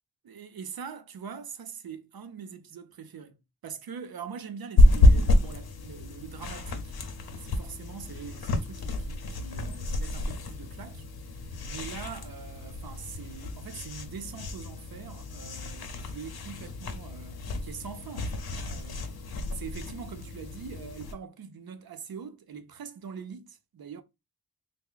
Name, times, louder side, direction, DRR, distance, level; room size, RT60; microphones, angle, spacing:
voice 1, 0.2-3.4 3.6-6.9 7.4-11.0 11.3-19.0 19.5-24.0, right 6 dB, 75° right, 0.7 m, -43 dB
sound 1, 4.8-21.1, left 1 dB, 80° left, 0.7 m, -28 dB
3.4 x 2.2 x 3.6 m
wide cardioid pair, 175°, 37 cm